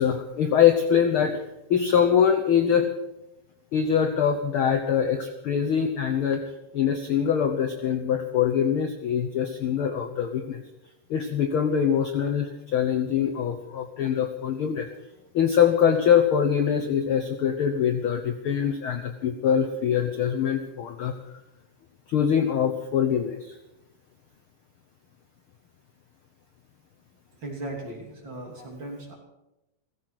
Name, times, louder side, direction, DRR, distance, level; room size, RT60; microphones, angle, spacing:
voice 1, 0.0-2.9 3.7-6.4 6.7-10.6 11.1-14.9 15.3-21.2 22.1-23.6, left 8 dB, 65° left, 7 dB, 1.4 m, -23 dB
voice 2, 27.4-29.1, right 1 dB, 40° right, 0 dB, 3.5 m, -37 dB
16.0 x 15.5 x 5.9 m, 0.95 s
omnidirectional pair, 3.5 m